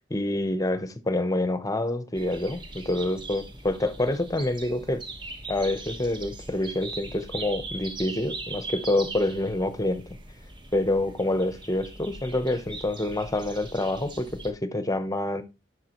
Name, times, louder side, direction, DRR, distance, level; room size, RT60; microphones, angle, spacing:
voice 1, 0.1-5.0 5.5-10.0 10.7-15.4, left 1 dB, 20° left, 0.8 m, -27 dB
sound 1, 2.1-14.5, right 3 dB, 25° right, 1.2 m, -40 dB
11.5 x 5.0 x 2.9 m
head